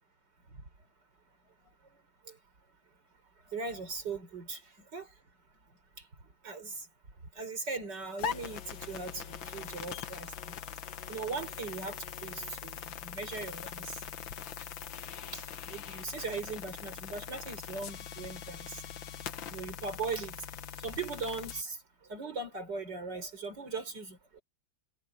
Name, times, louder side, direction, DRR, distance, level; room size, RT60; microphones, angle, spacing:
voice 1, 3.5-4.6 4.9-5.1 6.4-6.9 7.3-10.6 11.1-14.0 15.3-18.8 19.5-20.4 20.8-21.8 22.1-24.4, right 4 dB, 55° right, 4.9 m, -39 dB
sound 1, 8.2-21.6, left 8 dB, 70° left, 1.9 m, -42 dB
omnidirectional pair, 2.2 m